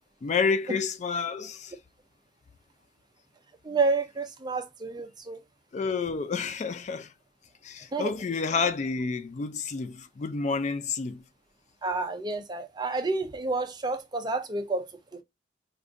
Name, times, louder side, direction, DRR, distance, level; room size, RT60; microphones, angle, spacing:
voice 1, 0.2-1.7 5.7-7.1 7.6-11.2, left 5 dB, 40° left, 0.3 m, -29 dB
voice 2, 3.6-5.4 7.9-8.1 11.8-14.9 15.1-15.2, right 3 dB, 20° right, 0.5 m, -29 dB
5.0 x 2.5 x 2.4 m
head